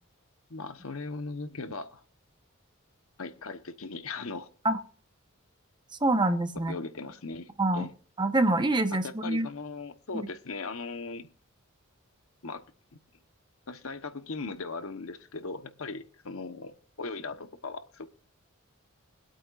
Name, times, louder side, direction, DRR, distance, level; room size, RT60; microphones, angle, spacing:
voice 1, 0.5-2.0 3.2-4.5 6.7-7.9 9.0-11.3 12.4-12.6 13.7-18.1, left 3 dB, 75° left, 1.1 m, -38 dB
voice 2, 6.0-6.8 7.6-7.8 8.2-9.5 10.1-10.3, right 2 dB, 20° right, 1.0 m, -25 dB
24.0 x 8.6 x 2.5 m
head